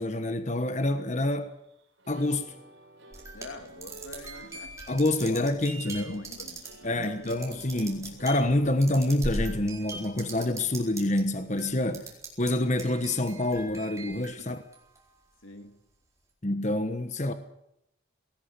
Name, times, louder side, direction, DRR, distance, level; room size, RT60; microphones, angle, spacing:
voice 1, 0.0-1.5 2.1-2.5 4.9-6.2 6.8-12.1 12.4-14.6 16.4-17.3, left 1 dB, 35° left, 1.2 m, -27 dB
sound 1, 1.4-9.8, right 2 dB, 70° right, 6.7 m, -53 dB
sound 2, 3.1-11.2 11.6-12.5 12.8-15.2, right 1 dB, 15° right, 4.4 m, -40 dB
voice 2, 3.3-4.8 5.2-5.6 5.8-7.4 14.3-14.5 15.4-15.8, left 2 dB, 90° left, 2.6 m, -44 dB
20.0 x 18.0 x 8.4 m
head